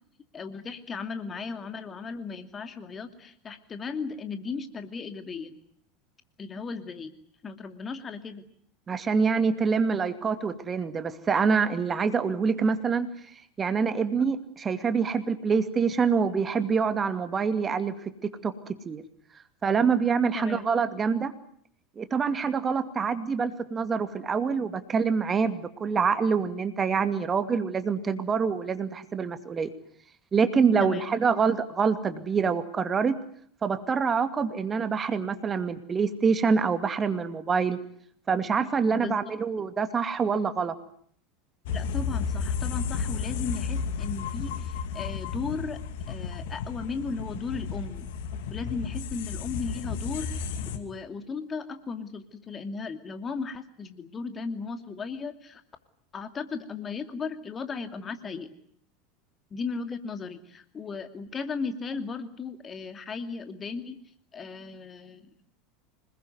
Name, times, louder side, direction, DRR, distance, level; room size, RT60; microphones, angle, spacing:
voice 1, 0.3-5.5 6.4-7.1 7.4-8.4 20.3-20.6 30.8-31.1 38.9-39.2 41.7-48.1 48.5-50.5 50.7-55.6 56.1-58.5 59.5-64.0 64.3-65.3, left 5 dB, 25° left, 8 dB, 2.6 m, -36 dB
voice 2, 8.9-13.1 13.6-17.9 18.2-18.5 18.9-19.0 19.6-21.3 22.0-29.7 30.3-33.2 33.6-37.8 38.3-40.7, right 5 dB, 25° right, 10 dB, 2.4 m, -26 dB
sound 1, 41.7-50.8, left 6 dB, 60° left, 2.5 m, -32 dB
27.0 x 21.0 x 9.6 m, 0.64 s
figure-of-eight pair, 75°, 0 cm